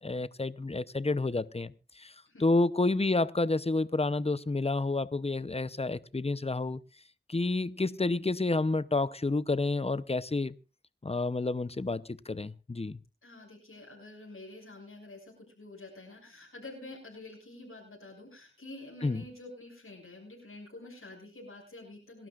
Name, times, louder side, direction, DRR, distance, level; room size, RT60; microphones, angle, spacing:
voice 1, 0.0-2.1 2.4-6.8 7.3-10.5 11.0-13.0 19.0-19.2, left 2 dB, 30° left, 0.7 m, -29 dB
voice 2, 13.2-22.3, left 2 dB, 90° left, 6.7 m, -48 dB
27.0 x 12.5 x 2.5 m
wide cardioid pair, 45°, 21 cm